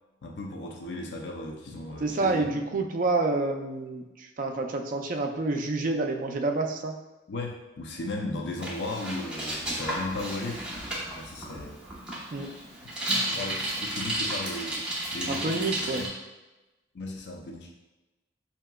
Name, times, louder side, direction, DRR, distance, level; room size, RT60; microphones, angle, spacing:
voice 1, 0.2-2.4 2.7-2.8 7.3-10.6 11.2-11.8 13.2-14.8 15.1-16.1 16.9-17.7, left 2 dB, 70° left, 1 dB, 0.5 m, -36 dB
voice 2, 2.0-7.0 12.3-12.5 15.3-16.0, right 3 dB, 50° right, 3 dB, 0.4 m, -28 dB
Bicycle, 8.6-16.1, right 1 dB, 5° right, 1.0 m, -33 dB
5.5 x 2.8 x 2.2 m, 1.1 s
head